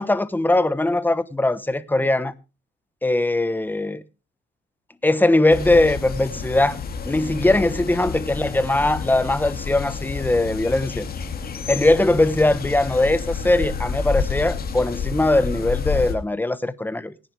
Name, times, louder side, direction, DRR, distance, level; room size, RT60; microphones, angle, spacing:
voice 1, 0.0-2.3 3.0-4.0 5.0-6.8 7.0-11.0 11.7-17.1, left 2 dB, 10° left, 1.0 m, -20 dB
sound 1, 5.5-16.1, left 5 dB, 50° left, 2.3 m, -29 dB
18.0 x 9.9 x 3.3 m
cardioid pair, 90°, 20 cm